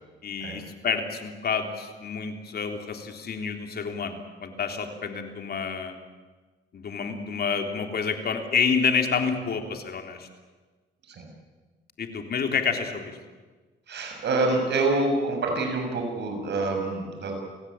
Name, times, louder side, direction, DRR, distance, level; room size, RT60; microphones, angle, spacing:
voice 1, 0.2-6.0 6.7-10.3 12.0-13.1, left 6 dB, 50° left, 5 dB, 3.6 m, -28 dB
voice 2, 13.9-17.3, right 2 dB, 60° right, 3 dB, 7.6 m, -26 dB
28.5 x 17.0 x 8.9 m, 1.3 s
cardioid pair, 90°, 20 cm